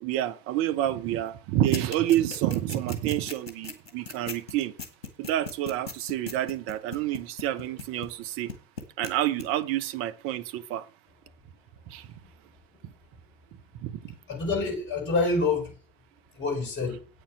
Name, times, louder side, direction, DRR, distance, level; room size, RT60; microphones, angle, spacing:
voice 1, 0.0-4.7 5.2-8.5 9.0-10.9 11.9-12.1 13.8-14.2, right 13 dB, 45° right, 1.0 m, -28 dB
sound 1, 1.7-8.2 8.5-9.1 9.4-9.5, left 4 dB, 85° left, 1.9 m, -38 dB
voice 2, 14.3-15.7 16.4-17.0, left 3 dB, 35° left, 5.0 m, -27 dB
9.0 x 6.7 x 7.3 m
hypercardioid pair, 85°, 30 cm